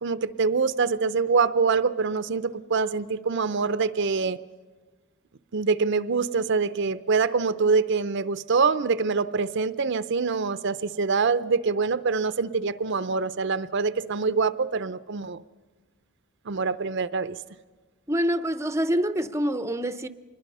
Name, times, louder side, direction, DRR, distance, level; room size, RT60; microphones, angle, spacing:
voice 1, 0.0-4.4 5.5-15.4 16.5-17.4, right 4 dB, 55° right, 0.6 m, -25 dB
voice 2, 18.1-20.1, equal, 15° right, 0.6 m, -26 dB
25.5 x 21.5 x 5.5 m
head